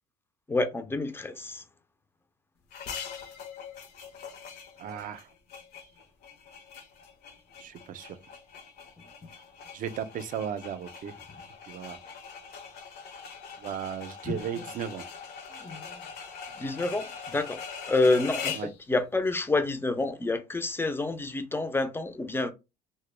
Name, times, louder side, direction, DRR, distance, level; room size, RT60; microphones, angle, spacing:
voice 1, 0.5-1.6 14.3-14.4 15.6-15.8 16.6-17.6 17.9-18.6 18.9-22.5, left 2 dB, 15° left, 0.4 m, -28 dB
sound 1, 2.7-18.8, left 6 dB, 70° left, 0.7 m, -42 dB
voice 2, 4.8-5.3 7.6-8.2 9.7-11.1 11.7-12.0 13.6-15.0 18.5-18.7, right 8 dB, 50° right, 0.4 m, -35 dB
2.1 x 2.0 x 3.1 m
cardioid pair, 110°, 17 cm